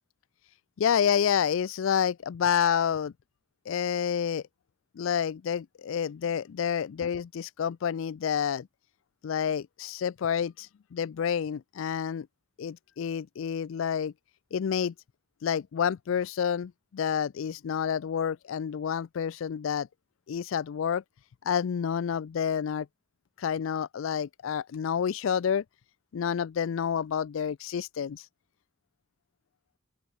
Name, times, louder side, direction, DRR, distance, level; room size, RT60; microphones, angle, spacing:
voice 1, 0.8-3.1 3.7-4.4 5.0-8.7 9.2-12.3 12.6-14.1 14.5-14.9 15.4-19.9 20.3-21.0 21.5-22.9 23.4-25.6 26.1-28.3, left 8 dB, 70° left, 0.4 m, -29 dB
open air
head